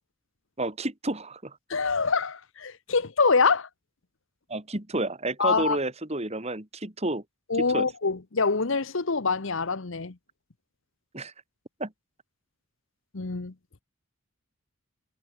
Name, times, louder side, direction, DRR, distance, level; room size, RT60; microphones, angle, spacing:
voice 1, 0.6-1.6 4.5-7.2 7.7-7.9 11.1-11.3 11.8-11.9, right 2 dB, 30° right, 2.2 m, -30 dB
voice 2, 1.7-3.7 5.4-5.8 7.5-10.2 13.1-13.5, left 4 dB, 60° left, 1.0 m, -25 dB
head